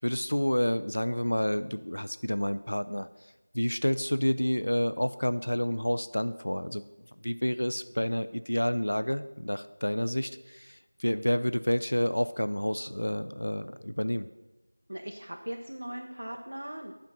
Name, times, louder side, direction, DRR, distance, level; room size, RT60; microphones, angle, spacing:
voice 1, 0.0-6.8 7.2-14.3, equal, 85° left, 12 dB, 0.5 m, -29 dB
voice 2, 14.9-16.9, right 1 dB, 60° right, 1 dB, 1.0 m, -39 dB
10.0 x 5.8 x 6.2 m, 1.1 s
figure-of-eight pair, 180°, 0 cm